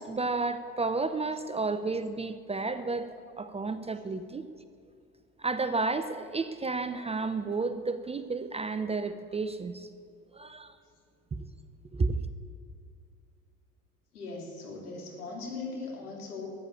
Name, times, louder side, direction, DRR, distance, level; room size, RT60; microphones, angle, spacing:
voice 1, 0.0-4.4 5.4-9.9 10.3-10.7 11.4-11.5 11.9-12.2, right 3 dB, 15° right, 11 dB, 0.6 m, -32 dB
voice 2, 14.1-16.5, left 3 dB, 75° left, -2 dB, 3.1 m, -39 dB
14.0 x 8.4 x 8.6 m, 2.3 s
figure-of-eight pair, 60°, 45 cm